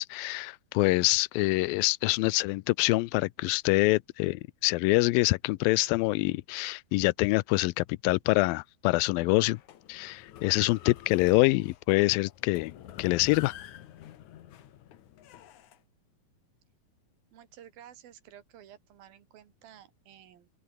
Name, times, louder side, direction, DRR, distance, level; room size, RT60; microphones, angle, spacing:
voice 1, 0.0-9.6 9.9-12.7 13.0-13.5, left 22 dB, 80° left, 2.3 m, -25 dB
sound 1, 9.5-15.8, left 11 dB, 60° left, 2.5 m, -47 dB
voice 2, 17.3-20.5, right 10 dB, 75° right, 3.7 m, -53 dB
open air
omnidirectional pair, 4.3 m